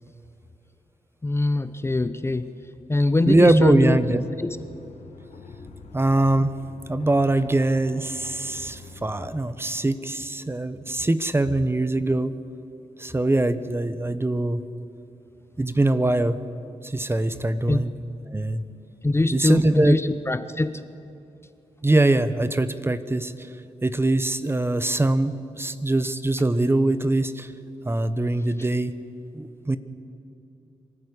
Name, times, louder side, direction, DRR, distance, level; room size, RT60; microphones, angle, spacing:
voice 1, 1.2-2.5 2.9-4.6 17.7-17.8 19.0-20.8, left 2 dB, 20° left, 12 dB, 0.8 m, -23 dB
voice 2, 3.2-4.2 5.9-6.5 6.9-12.3 13.0-14.6 15.6-16.4 16.8-17.9 18.3-18.6 19.3-20.0 21.8-23.5 23.8-27.5 27.8-28.9 29.3-29.8, right 2 dB, 20° right, 13 dB, 1.1 m, -22 dB
sound 1, 3.4-9.7, left 4 dB, 80° left, 3.5 m, -45 dB
24.0 x 13.5 x 9.9 m, 2.7 s
cardioid pair, 75°, 12 cm